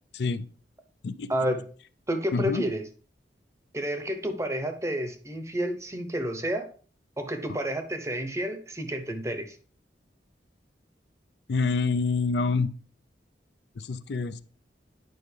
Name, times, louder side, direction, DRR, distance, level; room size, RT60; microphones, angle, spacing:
voice 1, 1.3-1.7 2.1-2.8 3.7-6.7 7.2-9.6, equal, 15° right, 7 dB, 0.7 m, -30 dB
voice 2, 2.3-2.7 11.5-12.7 13.8-14.4, left 4 dB, 70° left, 13 dB, 0.5 m, -27 dB
9.3 x 5.3 x 3.3 m, 0.42 s
head